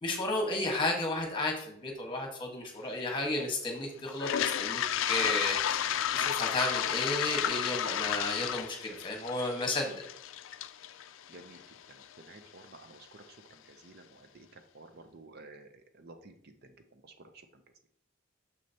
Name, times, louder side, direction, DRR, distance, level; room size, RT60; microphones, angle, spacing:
voice 1, 0.0-4.8 5.1-5.8 6.1-10.0, left 2 dB, 25° left, 1 dB, 1.4 m, -33 dB
Toilet flush, 4.1-12.0, left 10 dB, 70° left, 0.4 m, -32 dB
voice 2, 11.3-17.6, right 2 dB, 50° right, 7 dB, 0.6 m, -53 dB
6.6 x 6.3 x 2.9 m, 0.64 s
head